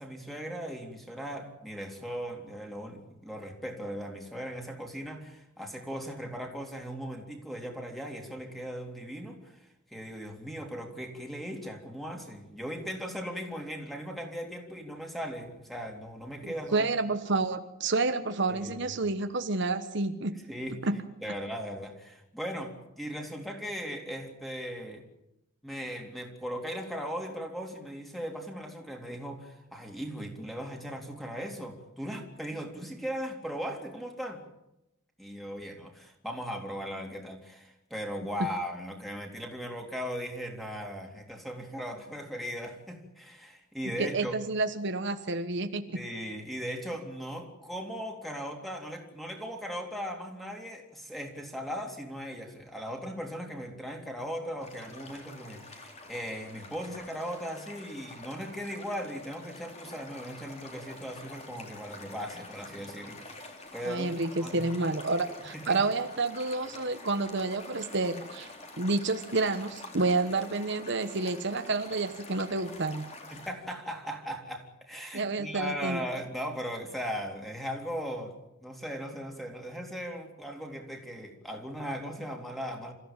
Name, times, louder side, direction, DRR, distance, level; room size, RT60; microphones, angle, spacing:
voice 1, 0.0-16.9 18.5-18.9 20.5-20.9 21.2-25.0 25.6-34.4 35.2-44.3 45.9-64.1 64.4-64.6 65.5-65.8 73.3-78.4 78.6-82.9, equal, ahead, 2 dB, 3.6 m, -38 dB
voice 2, 16.4-20.4 20.8-21.0 44.0-46.0 63.8-73.0 75.1-76.0, right 3 dB, 60° right, 8 dB, 1.2 m, -29 dB
sound 1, 54.6-73.5, left 2 dB, 35° left, 3.7 m, -47 dB
27.5 x 15.0 x 9.1 m, 0.88 s
head